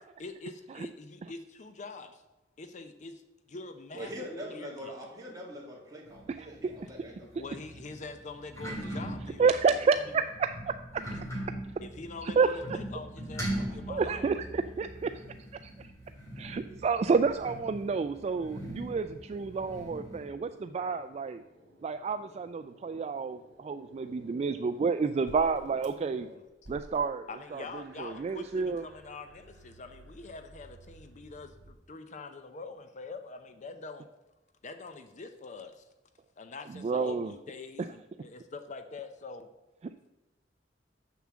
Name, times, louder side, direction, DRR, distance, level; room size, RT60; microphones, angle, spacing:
voice 1, 0.2-2.2 2.6-3.2 3.5-4.9 7.2-10.0 11.8-14.2 26.3-26.4 27.3-34.1 34.6-35.9 36.4-39.5, left 3 dB, 40° left, 8 dB, 0.6 m, -44 dB
voice 2, 3.9-7.3, equal, 20° right, -3 dB, 2.4 m, -43 dB
sound 1, 6.1-20.3, right 1 dB, 15° left, 3.4 m, -41 dB
voice 3, 6.3-6.7 9.4-11.0 12.2-12.6 13.9-15.2 15.6-15.9 16.4-21.4 21.8-26.3 26.7-28.8 36.7-37.3, right 5 dB, 35° right, 10 dB, 0.3 m, -30 dB
sound 2, 18.7-26.3 26.6-31.7, right 1 dB, 70° right, 2.0 m, -54 dB
6.8 x 6.2 x 7.3 m, 1.0 s
head